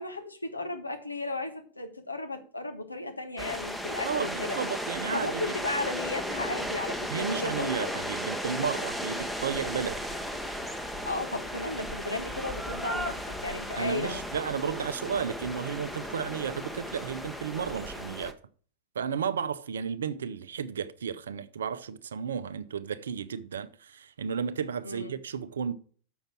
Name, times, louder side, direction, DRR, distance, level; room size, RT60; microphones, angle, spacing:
voice 1, 0.0-4.6 5.1-7.9 11.0-14.2 24.8-25.1, left 2 dB, 85° left, 1.3 m, -35 dB
sound 1, 3.4-18.3, equal, ahead, 0.9 m, -35 dB
voice 2, 4.0-5.6 7.1-10.0 13.7-18.4 18.9-25.7, right 7 dB, 65° right, 0.7 m, -33 dB
7.2 x 6.5 x 6.2 m
figure-of-eight pair, 90°, 0 cm